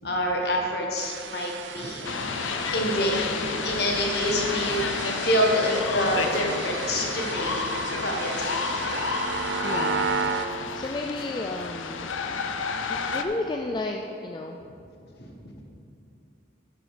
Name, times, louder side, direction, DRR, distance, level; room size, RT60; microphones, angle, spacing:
voice 1, 0.0-2.1 2.7-9.0 12.9-13.0 15.2-15.5, equal, 55° left, 0 dB, 1.6 m, -27 dB
sound 1, 1.0-10.5, right 6 dB, 70° right, 0.5 m, -34 dB
sound 2, 2.0-13.2, left 5 dB, 90° left, 0.6 m, -30 dB
voice 2, 9.4-10.1 10.7-12.2 12.9-14.6, left 2 dB, 25° left, 2 dB, 0.3 m, -33 dB
9.1 x 8.5 x 5.0 m, 2.6 s
head